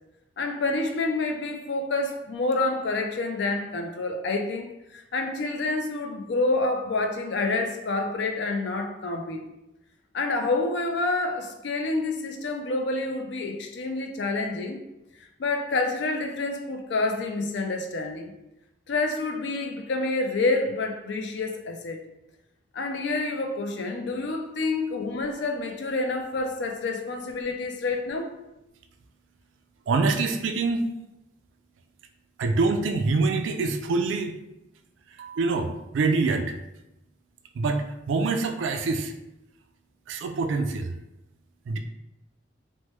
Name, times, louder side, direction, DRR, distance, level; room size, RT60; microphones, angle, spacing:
voice 1, 0.4-9.4 10.1-14.8 15.4-18.3 18.9-22.0 22.7-28.3, left 3 dB, 60° left, 4 dB, 0.4 m, -28 dB
voice 2, 29.9-30.8 32.4-34.4 35.1-36.5 37.5-39.1 40.1-40.9 41.7-41.8, right 3 dB, 75° right, 5 dB, 0.3 m, -25 dB
3.0 x 2.1 x 3.0 m, 0.91 s
head